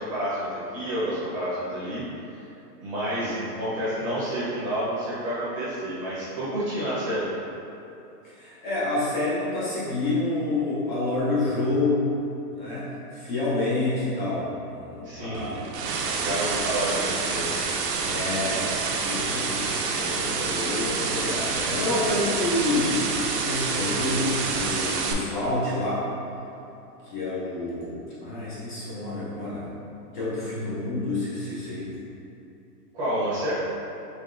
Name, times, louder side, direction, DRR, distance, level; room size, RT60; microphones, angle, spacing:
voice 1, 0.0-2.0 2.8-7.3 15.0-15.5 16.2-17.5 32.9-33.5, right 1 dB, 20° right, -10 dB, 0.8 m, -29 dB
voice 2, 8.2-12.1 12.6-15.5 18.0-23.2 23.4-26.0 27.0-29.7 30.1-31.9, left 2 dB, 30° left, -9 dB, 0.8 m, -28 dB
sound 1, 15.3-25.1, right 4 dB, 80° right, 0.7 m, -28 dB
5.1 x 3.3 x 2.6 m, 2.8 s
hypercardioid pair, 170°, 47 cm